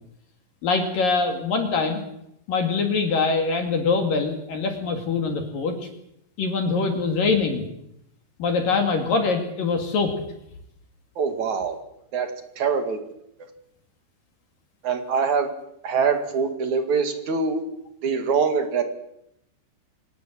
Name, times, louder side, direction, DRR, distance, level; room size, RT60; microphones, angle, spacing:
voice 1, 0.6-2.0 2.5-5.9 6.4-7.7 8.4-10.1, left 4 dB, 50° left, 4 dB, 3.5 m, -23 dB
voice 2, 11.2-11.8 12.1-12.3 12.6-13.0 14.8-15.5 15.8-17.6 18.0-18.8, right 5 dB, 50° right, 6 dB, 2.7 m, -23 dB
25.5 x 18.5 x 7.5 m, 0.78 s
omnidirectional pair, 5.7 m